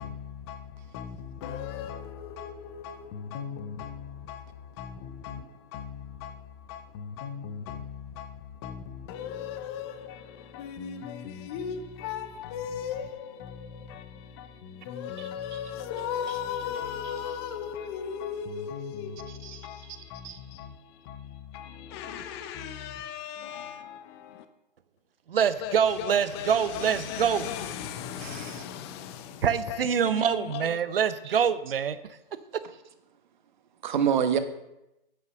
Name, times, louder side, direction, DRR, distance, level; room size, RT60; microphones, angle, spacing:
voice 1, 0.0-24.4 25.6-30.8, left 8 dB, 25° left, 0.8 m, -38 dB
voice 2, 25.3-27.5 29.4-32.0, right 7 dB, 70° right, 0.9 m, -25 dB
voice 3, 28.2-28.6 31.2-31.3 33.8-34.4, right 8 dB, 50° right, 1.3 m, -27 dB
8.3 x 8.3 x 6.2 m
hypercardioid pair, 145°, 29 cm